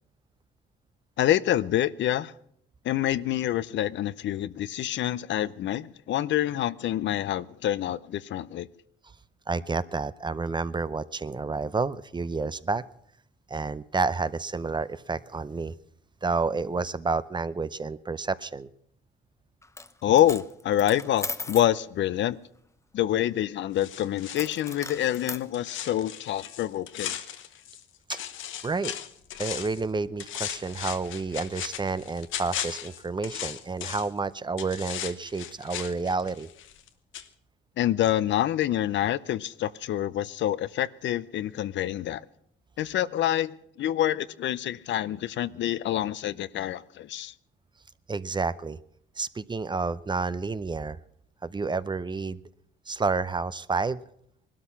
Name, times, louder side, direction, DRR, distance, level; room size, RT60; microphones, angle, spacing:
voice 1, 1.2-2.3 2.8-8.7 20.0-22.4 22.9-27.1 37.8-42.2 42.8-47.3, left 12 dB, 65° left, 0.6 m, -27 dB
voice 2, 9.5-12.8 13.5-15.7 16.2-18.7 28.1-28.2 28.6-28.9 29.4-36.5 48.1-48.8 49.2-51.0 51.4-52.4 52.9-54.0, right 4 dB, 25° right, 0.6 m, -30 dB
Coin (dropping), 19.6-19.9 20.2-21.7 24.3-25.4, left 3 dB, 15° left, 0.7 m, -37 dB
sound 1, 23.8-27.8 28.1-29.8 30.2-34.2 34.6-36.9 37.1-37.3, left 10 dB, 80° left, 1.0 m, -37 dB
19.5 x 12.5 x 5.8 m
cardioid pair, 90°, 20 cm